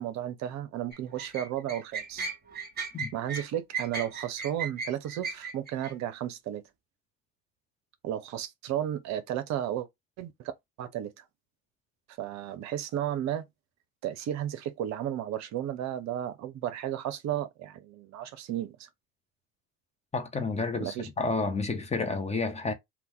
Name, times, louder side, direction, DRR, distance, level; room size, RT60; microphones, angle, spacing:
voice 1, 0.0-2.3 3.1-6.6 8.0-9.9 10.2-10.5 10.8-11.2 12.2-13.4 14.0-18.9 20.8-21.1, right 11 dB, 45° right, 0.7 m, -33 dB
sound 1, 0.9-5.9, right 5 dB, 25° right, 1.2 m, -36 dB
voice 2, 20.1-22.7, left 3 dB, 15° left, 0.8 m, -30 dB
2.8 x 2.3 x 3.7 m
hypercardioid pair, 70°, 38 cm